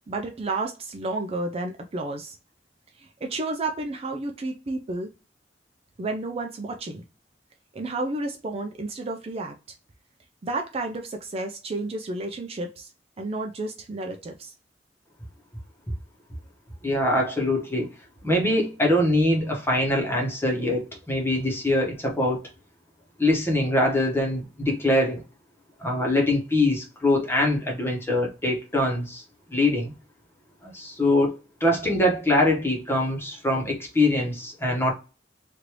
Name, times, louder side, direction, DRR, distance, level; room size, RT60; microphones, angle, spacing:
voice 1, 0.1-2.3 3.0-5.1 6.0-7.0 7.7-9.6 10.4-12.9 13.2-14.5, right 2 dB, 35° right, 0.4 m, -31 dB
voice 2, 16.8-17.9 18.2-22.4 23.2-25.2 25.8-29.2 29.5-29.9 30.6-34.9, left 1 dB, 15° left, 1.0 m, -23 dB
3.2 x 2.6 x 2.9 m
head